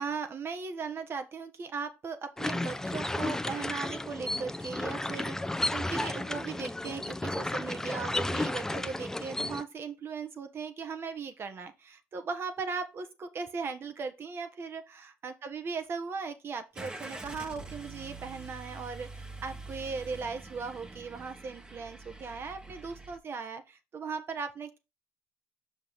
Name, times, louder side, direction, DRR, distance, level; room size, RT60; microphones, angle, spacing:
voice 1, 0.0-24.8, right 5 dB, 50° right, 1.2 m, -38 dB
sound 1, 2.4-9.6, left 2 dB, 10° left, 0.6 m, -33 dB
Car / Engine starting, 16.7-23.2, right 2 dB, 15° right, 1.2 m, -45 dB
6.3 x 5.3 x 4.0 m
cardioid pair, 85°, 5 cm